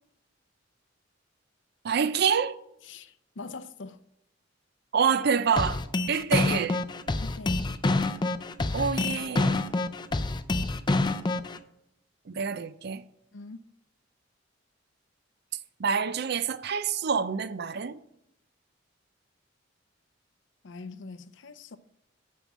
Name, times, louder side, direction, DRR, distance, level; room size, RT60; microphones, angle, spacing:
voice 1, 1.8-2.6 4.9-5.8 6.1-6.8 8.7-9.6 12.3-13.0 15.8-18.0, right 6 dB, 60° right, 0.5 m, -27 dB
voice 2, 2.8-4.0 7.2-7.8 13.3-13.6 20.6-21.8, left 3 dB, 70° left, 0.6 m, -43 dB
sound 1, 5.6-11.6, left 2 dB, 25° left, 0.5 m, -27 dB
9.4 x 5.2 x 7.3 m
head